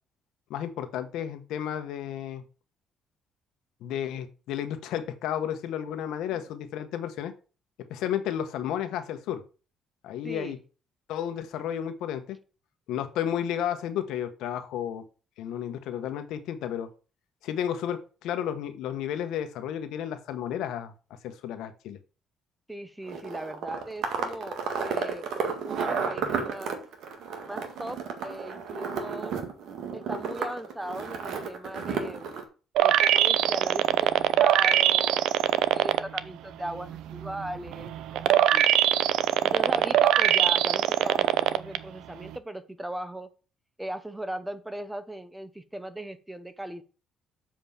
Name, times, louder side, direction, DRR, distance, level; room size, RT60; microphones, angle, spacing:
voice 1, 0.5-2.4 3.8-7.3 7.9-9.4 10.0-10.6 11.1-12.4 12.9-15.0 15.4-16.9 17.4-20.9 21.2-22.0, left 10 dB, 85° left, 1.2 m, -32 dB
voice 2, 10.2-10.6 22.7-25.3 25.6-26.8 27.4-29.4 29.9-32.4 32.8-35.3 35.7-38.7 39.4-43.3 43.8-46.8, right 1 dB, 5° right, 0.9 m, -38 dB
sound 1, 23.1-32.4, right 5 dB, 70° right, 2.0 m, -32 dB
sound 2, 32.8-36.2 36.7-41.8 42.2-42.3, right 12 dB, 85° right, 0.6 m, -22 dB
7.6 x 5.0 x 7.2 m
cardioid pair, 150°, 0 cm